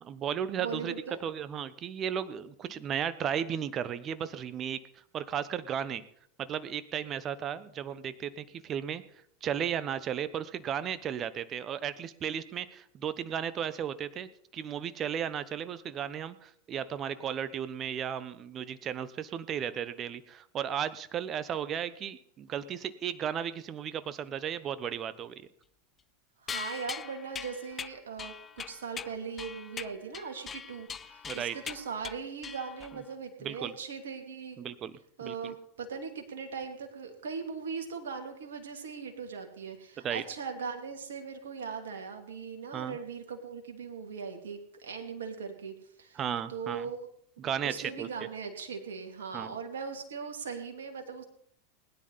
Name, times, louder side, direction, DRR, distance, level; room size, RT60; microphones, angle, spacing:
voice 1, 0.0-0.9 1.2-4.8 5.1-6.0 6.4-9.0 9.4-25.3 31.3-31.5 32.9-33.0 33.4-33.7 34.6-34.9 35.2-35.5 40.0-40.2 42.7-43.0 46.1-46.9 47.4-48.1 49.3-49.5, right 8 dB, 35° right, 15 dB, 1.1 m, -35 dB
voice 2, 0.6-1.2 26.4-34.6 35.2-46.2 46.5-47.1 47.4-51.2, right 5 dB, 70° right, 4 dB, 2.7 m, -39 dB
sound 1, 26.5-33.1, left 7 dB, 25° left, 0.5 m, -41 dB
21.0 x 10.5 x 4.1 m, 0.67 s
figure-of-eight pair, 90°, 0 cm